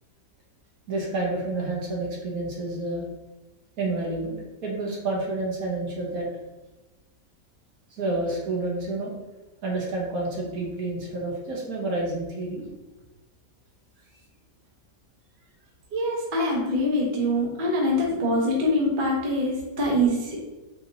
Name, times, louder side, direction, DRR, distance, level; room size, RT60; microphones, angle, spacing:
voice 1, 0.9-3.0 3.8-6.3 7.9-9.1 9.6-12.6, right 2 dB, 60° right, -3 dB, 1.5 m, -29 dB
voice 2, 15.9-20.4, equal, 35° right, -3 dB, 0.9 m, -24 dB
4.4 x 2.7 x 4.0 m, 1.1 s
omnidirectional pair, 1.9 m